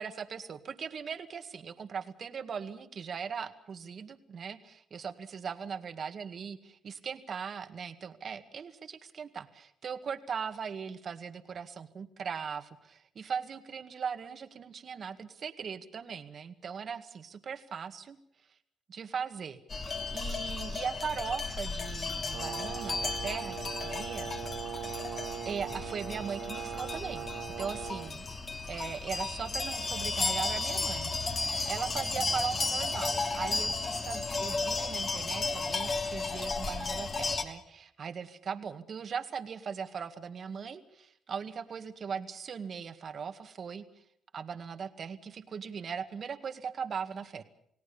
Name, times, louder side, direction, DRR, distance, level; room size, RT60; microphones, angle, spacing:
voice 1, 0.0-6.6 6.8-18.2 18.9-19.6 20.1-24.3 25.5-27.3 27.6-28.2 28.7-43.8 44.3-47.4, right 6 dB, 50° right, 9 dB, 1.9 m, -39 dB
sound 1, 19.7-37.4, left 3 dB, 40° left, 2.9 m, -34 dB
Brass instrument, 22.3-28.1, right 10 dB, 85° right, 1.2 m, -40 dB
29.5 x 17.5 x 7.1 m, 0.71 s
cardioid pair, 90°, 0 cm